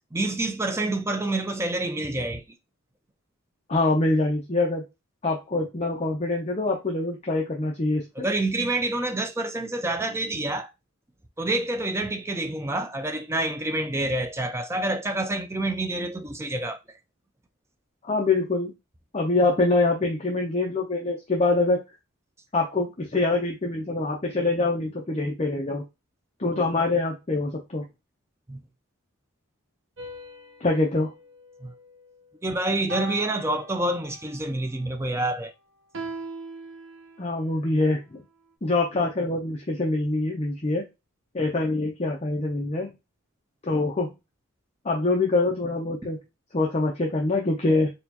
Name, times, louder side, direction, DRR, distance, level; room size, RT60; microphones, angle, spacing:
voice 1, 0.1-2.4 8.2-10.7 11.4-16.8 28.5-28.7 31.6-31.7 32.4-35.5, right 2 dB, 10° right, 0.4 m, -27 dB
voice 2, 3.7-4.8 5.2-8.0 18.0-18.7 19.1-21.8 22.5-25.8 26.4-27.8 30.6-31.1 37.2-38.2 38.6-40.8 41.3-42.9 43.6-44.1 44.8-46.2 46.5-47.9, left 2 dB, 30° left, 0.6 m, -24 dB
sound 1, 30.0-32.3 32.9-34.4 35.9-37.4, right 1 dB, 65° right, 0.8 m, -40 dB
4.2 x 2.3 x 2.8 m
head